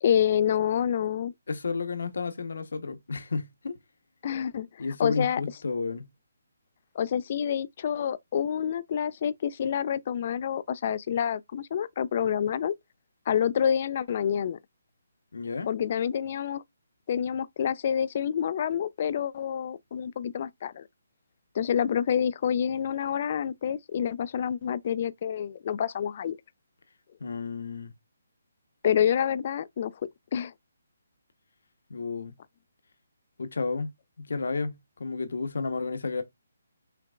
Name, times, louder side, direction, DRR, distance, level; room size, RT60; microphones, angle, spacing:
voice 1, 0.0-1.3 4.2-5.4 7.0-12.7 13.3-14.6 15.7-16.6 17.1-20.9 21.5-26.4 28.8-29.9 30.3-30.5, left 8 dB, 40° left, 0.4 m, -28 dB
voice 2, 1.5-3.8 4.8-6.1 15.3-15.7 27.2-27.9 31.9-32.3 33.4-33.9 34.2-36.2, left 4 dB, 75° left, 1.0 m, -32 dB
5.7 x 3.3 x 2.4 m
hypercardioid pair, 165°, 0 cm